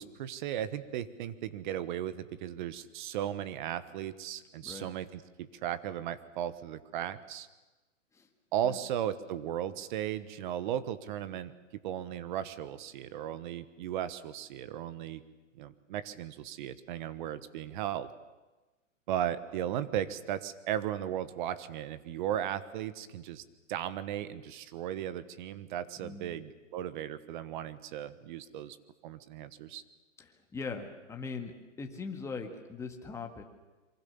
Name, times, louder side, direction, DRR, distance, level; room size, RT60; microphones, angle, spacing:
voice 1, 0.0-7.5 8.5-11.5 11.8-15.2 15.5-18.1 19.1-23.4 23.7-28.8 29.0-29.8, right 11 dB, 40° right, 14 dB, 1.3 m, -36 dB
voice 2, 26.0-26.3 30.2-31.5 31.8-33.4, left 4 dB, 5° left, 3 dB, 1.9 m, -40 dB
27.0 x 24.0 x 7.1 m, 1.1 s
hypercardioid pair, 155°, 39 cm